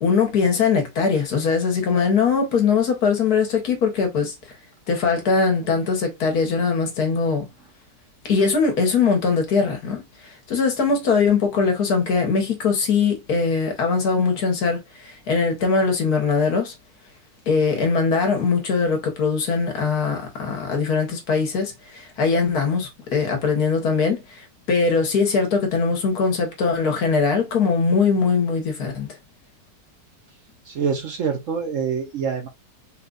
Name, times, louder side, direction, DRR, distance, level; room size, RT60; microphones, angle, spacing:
voice 1, 0.0-4.3 4.9-7.5 8.2-16.7 17.5-29.2, left 5 dB, 65° left, 1.6 m, -21 dB
voice 2, 30.7-32.5, right 6 dB, 60° right, 1.0 m, -25 dB
4.2 x 2.3 x 3.9 m
omnidirectional pair, 1.8 m